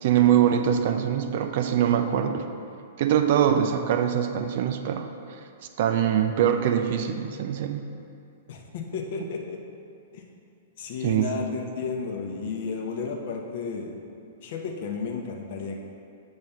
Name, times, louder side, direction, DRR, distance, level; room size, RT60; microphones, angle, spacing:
voice 1, 0.0-2.4 3.0-5.1 5.8-7.8 11.0-11.5, right 9 dB, 45° right, 7 dB, 0.4 m, -23 dB
voice 2, 8.5-9.6 10.1-10.2 10.8-13.9 14.4-15.8, left 5 dB, 50° left, 1 dB, 0.8 m, -33 dB
7.3 x 3.2 x 5.6 m, 2.5 s
figure-of-eight pair, 105°, 0 cm